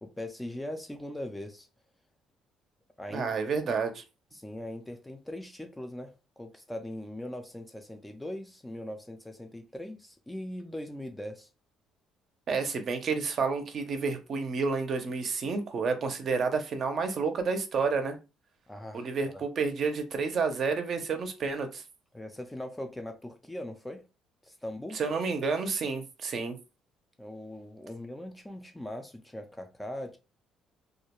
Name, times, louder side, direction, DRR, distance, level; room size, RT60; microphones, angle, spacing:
voice 1, 0.0-1.7 3.0-3.3 4.3-11.5 18.7-19.4 22.1-24.0 24.4-25.0 27.2-30.2, left 1 dB, 5° left, 0.4 m, -40 dB
voice 2, 3.1-4.0 12.5-18.2 18.9-21.8 24.9-26.6, right 4 dB, 45° right, 0.5 m, -30 dB
2.3 x 2.2 x 2.9 m
cardioid pair, 135°, 0 cm